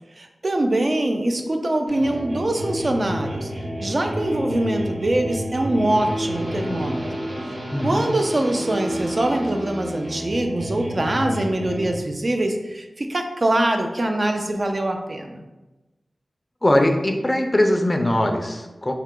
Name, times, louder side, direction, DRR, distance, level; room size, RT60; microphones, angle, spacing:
voice 1, 0.2-3.5 3.8-7.0 7.8-15.4, right 1 dB, 50° right, 4 dB, 0.3 m, -23 dB
sound 1, 1.9-12.0, equal, 75° right, 0.8 m, -30 dB
voice 2, 7.7-8.1 16.6-18.9, left 1 dB, 25° left, 4 dB, 0.4 m, -21 dB
2.8 x 2.3 x 3.6 m, 1.1 s
wide cardioid pair, 65°, 0 cm